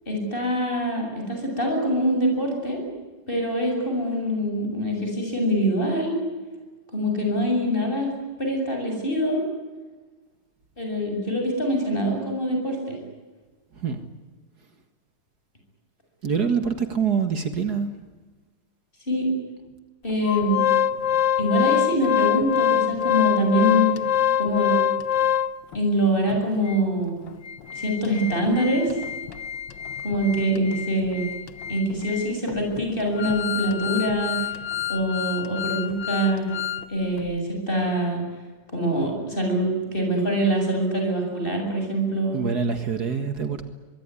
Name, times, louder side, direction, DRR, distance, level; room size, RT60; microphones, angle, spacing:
voice 1, 0.1-2.8 3.3-6.2 6.9-8.1 8.4-9.4 10.8-13.0 19.1-19.3 20.0-20.6 21.4-23.9 24.4-24.8 25.7-27.2 27.7-29.0 30.0-31.2 31.7-34.5 34.9-36.4 36.9-38.2 38.7-42.4, equal, 30° left, 2 dB, 8.3 m, -24 dB
voice 2, 16.2-17.9 42.3-43.7, right 6 dB, 60° right, 8 dB, 2.2 m, -25 dB
Organ, 20.2-25.8 26.3-26.4 26.7-26.8 27.3-36.9 37.2-37.3, left 9 dB, 80° left, 1.8 m, -26 dB
24.5 x 23.0 x 9.9 m, 1.3 s
omnidirectional pair, 2.0 m